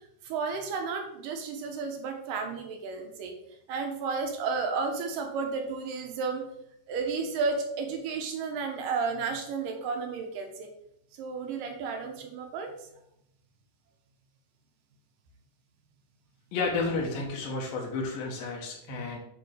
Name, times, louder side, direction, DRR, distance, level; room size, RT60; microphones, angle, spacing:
voice 1, 0.2-3.3 3.7-6.4 6.9-10.7 11.2-12.7 18.9-19.1, right 4 dB, 80° right, 4 dB, 2.5 m, -32 dB
voice 2, 16.5-19.2, left 3 dB, 85° left, -1 dB, 2.8 m, -31 dB
8.4 x 4.3 x 3.2 m, 0.75 s
omnidirectional pair, 4.1 m